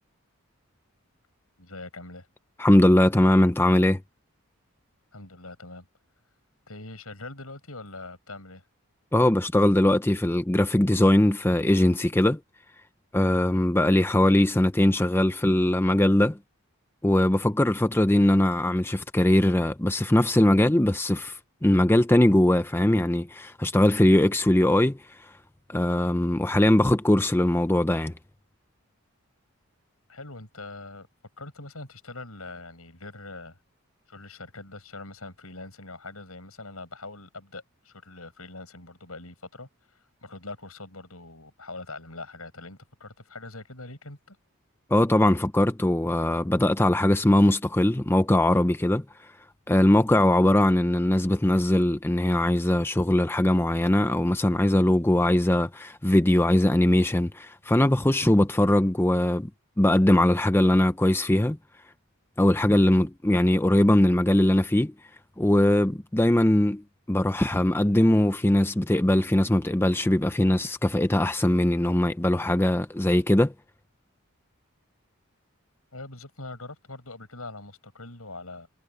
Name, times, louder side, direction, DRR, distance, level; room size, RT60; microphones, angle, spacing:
voice 1, 1.6-2.3 5.1-5.9 6.7-8.6 30.1-31.1 31.4-33.6 34.1-39.7 40.2-44.4 75.9-78.7, left 2 dB, 75° left, 7.8 m, -42 dB
voice 2, 2.6-4.0 9.1-12.4 13.1-16.4 17.0-25.3 25.7-28.1 44.9-49.0 49.7-59.5 59.8-61.6 62.4-64.9 65.4-66.8 67.1-73.5, left 1 dB, 10° left, 0.5 m, -21 dB
head